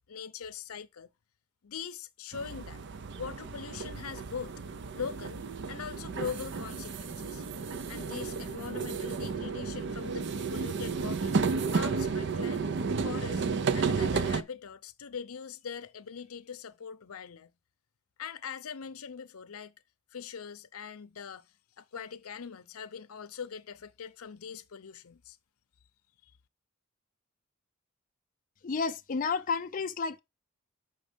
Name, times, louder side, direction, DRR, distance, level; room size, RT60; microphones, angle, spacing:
voice 1, 0.1-1.1 1.6-2.8 3.2-4.5 4.9-5.4 5.7-7.4 7.9-12.7 13.0-13.4 13.7-17.5 18.2-19.7 20.1-25.4 26.2-26.3, left 7 dB, 85° left, 0.6 m, -42 dB
sound 1, 2.3-14.4, right 5 dB, 55° right, 0.5 m, -32 dB
voice 2, 28.6-30.2, left 5 dB, 40° left, 0.4 m, -31 dB
6.7 x 5.3 x 5.1 m
head